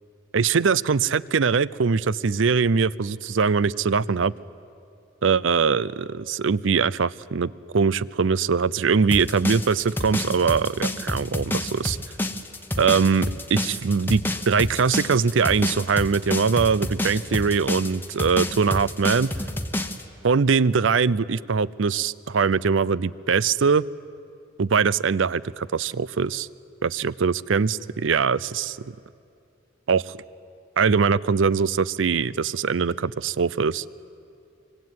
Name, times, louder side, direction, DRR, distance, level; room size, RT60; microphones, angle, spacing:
voice 1, 0.3-4.3 5.2-12.0 12.8-19.3 20.2-23.8 24.6-26.5 26.8-28.9 29.9-30.2 30.8-33.8, right 5 dB, 70° right, 20 dB, 0.5 m, -22 dB
sound 1, 9.1-20.0, left 1 dB, 10° left, 1.1 m, -28 dB
24.5 x 24.5 x 9.5 m, 2.5 s
head